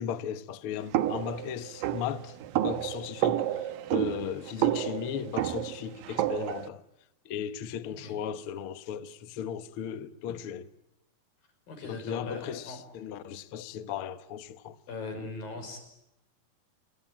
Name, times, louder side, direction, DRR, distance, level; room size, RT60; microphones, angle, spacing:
voice 1, 0.0-3.5 3.9-6.8 7.2-10.7 11.8-14.8, left 9 dB, 85° left, 1.2 m, -36 dB
sound 1, 0.9-6.7, right 13 dB, 70° right, 2.7 m, -30 dB
voice 2, 7.9-8.2 11.7-12.8 14.9-15.8, left 3 dB, 65° left, 7.5 m, -40 dB
28.0 x 23.5 x 8.9 m
omnidirectional pair, 4.4 m